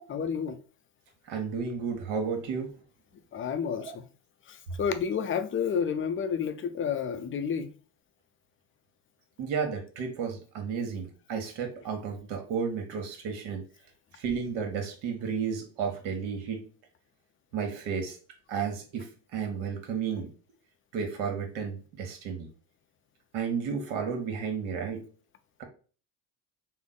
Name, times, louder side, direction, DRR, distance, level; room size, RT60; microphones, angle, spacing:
voice 1, 0.1-0.6 3.3-4.0 4.5-7.7, left 7 dB, 25° left, 0.4 m, -30 dB
voice 2, 1.3-2.7 9.4-13.6 14.1-16.6 17.5-18.2 18.5-20.3 20.9-22.5 23.3-25.0, right 6 dB, 70° right, 1.3 m, -32 dB
3.6 x 2.0 x 3.8 m
hypercardioid pair, 75°, 50 cm